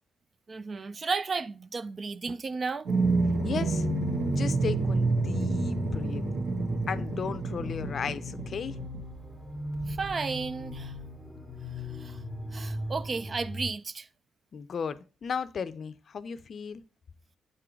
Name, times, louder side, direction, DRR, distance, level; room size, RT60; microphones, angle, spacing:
voice 1, 0.5-2.9 9.9-10.9 12.0-12.2 12.5-14.1, right 4 dB, 35° right, 0.4 m, -33 dB
sound 1, 2.9-9.0 9.7-10.1, right 3 dB, 65° right, 1.6 m, -29 dB
sound 2, 3.0-13.7, equal, 10° right, 2.1 m, -37 dB
voice 2, 3.4-3.9 4.4-6.2 6.9-8.8 14.5-16.8, left 6 dB, 50° left, 0.5 m, -35 dB
7.7 x 3.7 x 4.5 m
cardioid pair, 90°, 0 cm